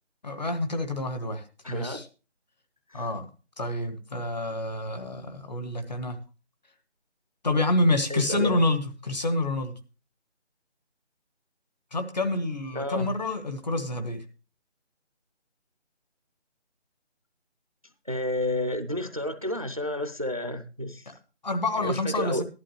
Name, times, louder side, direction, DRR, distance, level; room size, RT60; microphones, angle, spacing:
voice 1, 0.2-2.1 2.9-3.3 3.6-6.2 7.4-9.7 11.9-14.2 21.1-21.2 21.4-22.4, left 2 dB, 40° left, 7 dB, 1.3 m, -28 dB
voice 2, 1.6-2.0 2.9-3.1 8.1-8.6 12.7-13.1 18.1-21.1 21.8-22.4, left 1 dB, 30° right, 10 dB, 0.5 m, -30 dB
13.5 x 11.5 x 3.1 m, 0.33 s
figure-of-eight pair, 175°, 35 cm